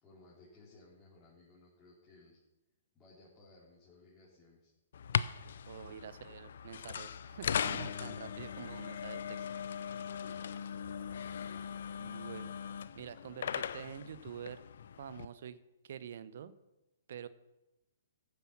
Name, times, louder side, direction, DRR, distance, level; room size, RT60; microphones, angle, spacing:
voice 1, 0.0-2.4 2.9-4.7 10.0-10.8, left 3 dB, 20° left, -7 dB, 4.1 m, -60 dB
sound 1, 4.9-15.2, left 8 dB, 60° left, 0.5 m, -39 dB
voice 2, 5.7-9.5 12.0-12.6 12.9-14.6 15.0-15.6 15.8-16.6 17.1-17.3, right 8 dB, 60° right, 16 dB, 0.9 m, -47 dB
15.0 x 8.1 x 5.9 m, 0.99 s
figure-of-eight pair, 120°, 0 cm